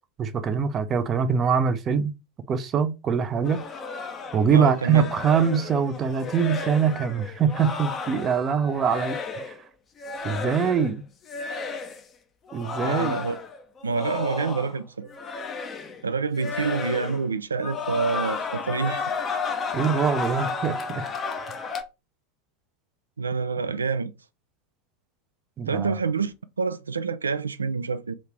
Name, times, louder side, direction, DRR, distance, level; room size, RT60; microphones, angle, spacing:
voice 1, 0.2-2.1 2.5-3.6 4.3-9.5 10.2-11.0 12.5-13.2 19.7-21.1 25.6-25.9, right 6 dB, 30° right, 0.5 m, -23 dB
sound 1, 3.4-9.6 10.0-10.9 11.2-12.0 12.5-14.8 15.1-16.0 16.3-17.3 17.6-21.8, left 4 dB, 30° left, 0.6 m, -33 dB
voice 2, 4.5-5.1 12.8-13.3 13.8-15.1 16.0-19.0 23.2-24.1 25.7-28.1, right 4 dB, 80° right, 0.3 m, -27 dB
3.0 x 2.8 x 3.4 m
figure-of-eight pair, 85°, 0 cm